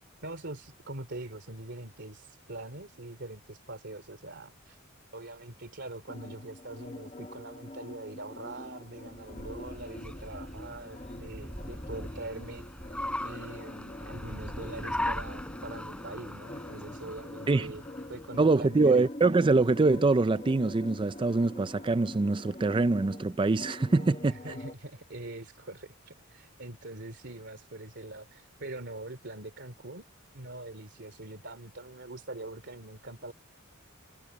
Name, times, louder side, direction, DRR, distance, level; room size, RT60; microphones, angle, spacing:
voice 1, 0.2-4.8 5.1-12.7 13.2-17.8 18.1-19.1 24.2-30.0 30.3-33.3, right 2 dB, 55° right, 3.0 m, -43 dB
sound 1, 6.1-24.7, left 1 dB, 30° left, 1.2 m, -45 dB
Car, 9.0-18.5, left 1 dB, 5° left, 4.7 m, -39 dB
voice 2, 18.4-24.3, right 3 dB, 25° right, 0.4 m, -24 dB
head